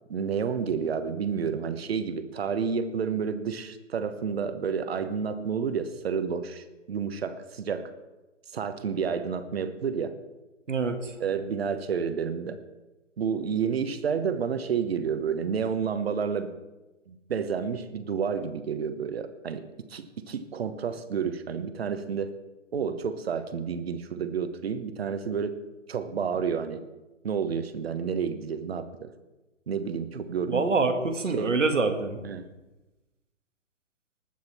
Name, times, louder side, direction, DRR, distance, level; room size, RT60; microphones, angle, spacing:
voice 1, 0.1-7.9 8.5-10.2 11.2-12.6 13.2-16.5 17.1-22.3 22.7-25.6 25.9-26.8 27.2-29.1 29.7-30.7 31.3-31.6 32.2-32.4, right 6 dB, 50° right, 11 dB, 1.2 m, -30 dB
voice 2, 10.7-11.1 30.5-32.2, right 3 dB, 75° right, 7 dB, 1.8 m, -25 dB
19.5 x 7.8 x 4.3 m, 1.1 s
figure-of-eight pair, 130°, 38 cm